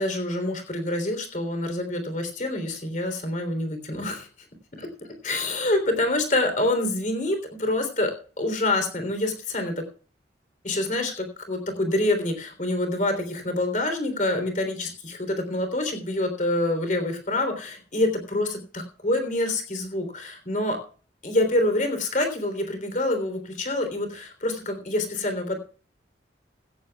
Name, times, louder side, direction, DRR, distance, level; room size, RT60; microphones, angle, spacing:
voice 1, 0.0-4.3 4.8-4.9 5.2-9.7 10.6-20.8 21.2-25.6, left 1 dB, 45° left, 6 dB, 3.3 m, -26 dB
16.5 x 15.0 x 2.3 m, 0.40 s
head